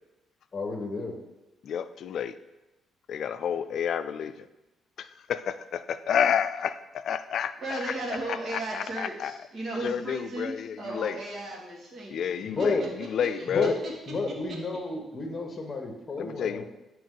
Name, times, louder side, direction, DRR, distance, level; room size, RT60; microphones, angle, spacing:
voice 1, 0.5-1.2 12.4-12.8 13.5-13.8 14.1-16.6, left 3 dB, 30° left, 2 dB, 1.1 m, -31 dB
voice 2, 1.6-2.3 3.1-4.5 5.0-7.9 8.3-9.4 9.8-11.2 12.1-13.7 16.2-16.6, left 8 dB, 65° left, 12 dB, 0.3 m, -30 dB
voice 3, 7.6-12.3 12.6-12.7 13.2-13.4, right 2 dB, 50° right, -2 dB, 1.6 m, -35 dB
8.6 x 3.1 x 3.8 m, 0.99 s
cardioid pair, 90°, 0 cm